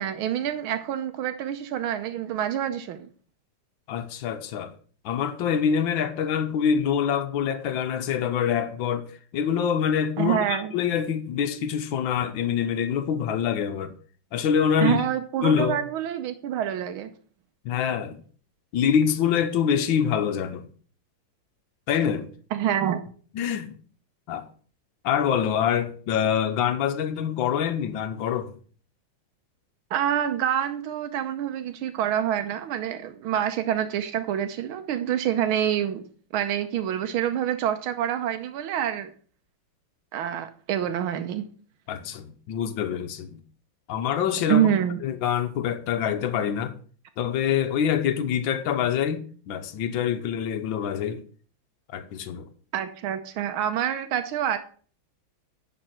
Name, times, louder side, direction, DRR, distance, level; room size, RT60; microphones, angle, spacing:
voice 1, 0.0-3.1 10.2-10.7 14.8-17.1 22.5-23.0 29.9-36.0 36.3-39.1 40.1-41.5 44.5-45.0 52.7-54.6, right 10 dB, 90° right, 1.6 m, -26 dB
voice 2, 3.9-4.7 5.1-13.9 14.3-15.0 15.4-15.8 17.7-18.2 18.7-20.7 21.9-22.3 23.3-23.8 24.3-24.5 25.0-28.6 41.9-43.4 43.9-44.7 45.0-46.8 47.2-51.2 51.9-52.5, left 8 dB, 70° left, 1.7 m, -25 dB
10.5 x 4.5 x 6.1 m
omnidirectional pair, 2.2 m